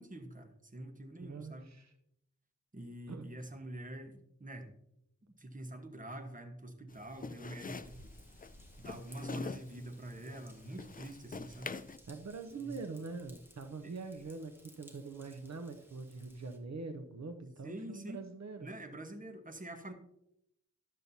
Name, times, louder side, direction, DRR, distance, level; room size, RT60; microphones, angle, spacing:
voice 1, 0.0-1.7 2.7-4.7 5.4-8.1 8.8-11.7 12.6-12.8 13.8-13.9 17.6-18.2 18.6-19.9, right 1 dB, 30° right, 6 dB, 1.2 m, -46 dB
voice 2, 1.2-1.9 3.1-3.3 12.1-18.7, right 4 dB, 65° right, 6 dB, 0.7 m, -44 dB
sound 1, 6.9-12.0, left 4 dB, 30° left, 0.4 m, -45 dB
Raindrop / Vehicle horn car horn honking / Trickle dribble, 7.8-16.6, equal, 10° right, 1.6 m, -60 dB
12.0 x 7.4 x 2.7 m, 0.79 s
wide cardioid pair, 60°, 29 cm